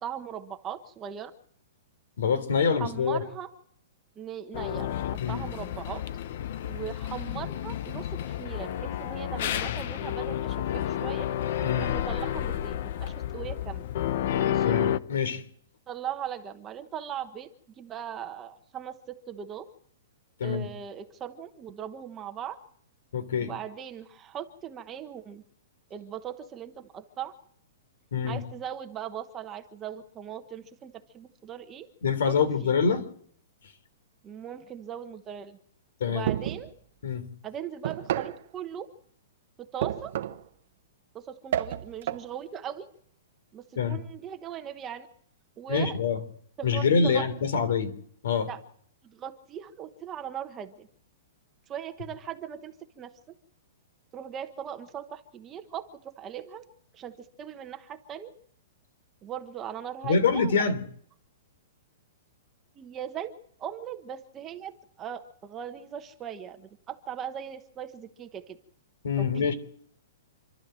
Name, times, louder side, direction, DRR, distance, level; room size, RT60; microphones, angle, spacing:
voice 1, 0.0-1.3 2.8-3.5 4.2-4.9 5.3-6.0 6.7-11.3 11.8-13.9 14.4-14.7 15.9-17.5 17.8-19.7 20.4-22.6 23.4-25.4 25.9-27.3 28.2-31.9 32.3-32.4 32.6-32.7 34.2-35.6 36.1-36.7 37.4-38.9 39.6-40.2 41.1-42.9 43.5-45.1 45.6-46.0 46.6-47.2 48.5-48.6 49.0-50.9 51.7-53.1 54.1-56.7 56.9-58.3 59.2-60.6 62.8-63.3 63.6-68.6 69.2-69.5, right 9 dB, 15° right, 7 dB, 1.1 m, -39 dB
voice 2, 2.2-3.2 5.2-5.4 11.6-11.9 14.6-15.4 20.4-20.7 23.1-23.5 28.1-28.4 32.0-33.0 36.0-36.3 37.0-37.3 43.8-44.0 45.7-46.2 46.6-47.9 48.2-48.5 60.0-60.8 69.0-69.5, left 5 dB, 70° left, 13 dB, 3.4 m, -25 dB
sound 1, 4.5-15.0, left 11 dB, 45° left, 0.7 m, -31 dB
sound 2, 36.3-36.7 37.8-38.4 39.8-40.5 41.5-42.3, right 11 dB, 50° right, 1.0 m, -30 dB
28.0 x 12.5 x 7.6 m, 0.64 s
hypercardioid pair, 175°, 0 cm